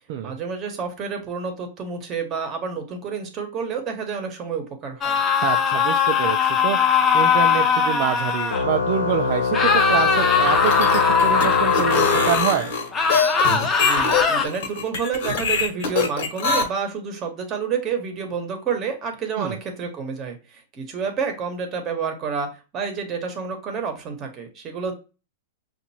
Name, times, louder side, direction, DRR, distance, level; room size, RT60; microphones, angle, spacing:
voice 1, 0.2-5.2 13.8-22.5 22.7-24.9, right 6 dB, 25° right, 4 dB, 1.1 m, -29 dB
sound 1, 5.0-8.6 9.5-12.5 12.9-14.4, left 6 dB, 20° left, 0.6 m, -20 dB
voice 2, 5.4-12.8 19.4-19.6, right 10 dB, 45° right, 5 dB, 0.4 m, -26 dB
Organ, 8.5-13.0, left 5 dB, 85° left, 0.6 m, -24 dB
sound 2, 10.5-16.6, left 5 dB, 60° left, 1.3 m, -23 dB
5.8 x 2.5 x 2.7 m, 0.32 s
hypercardioid pair, 145°, 0 cm